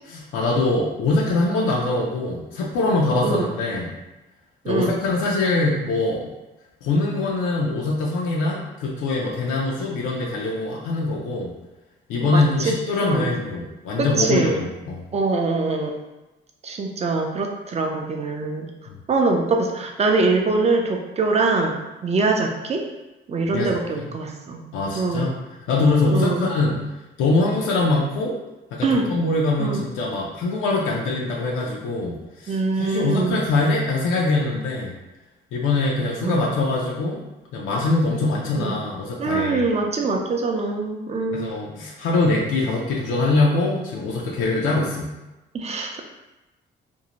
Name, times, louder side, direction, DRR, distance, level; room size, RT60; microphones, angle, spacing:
voice 1, 0.1-3.9 4.7-6.3 6.8-11.5 12.1-15.0 18.9-19.0 23.5-24.1 24.7-25.4 25.7-26.8 27.2-28.4 28.7-34.9 35.5-37.2 37.5-39.7 41.3-45.1, left 2 dB, 90° left, -3 dB, 0.5 m, -23 dB
voice 2, 4.6-5.0 12.2-12.7 13.0-13.4 14.0-14.6 15.1-15.9 16.6-18.7 19.1-22.9 23.3-24.6 24.9-25.3 26.1-26.5 28.8-29.1 29.6-29.9 32.5-33.4 36.2-36.5 38.6-38.8 39.2-41.5 45.5-46.0, right 3 dB, 35° right, 3 dB, 0.4 m, -23 dB
2.6 x 2.1 x 2.9 m, 1.0 s
cardioid pair, 90°, 20 cm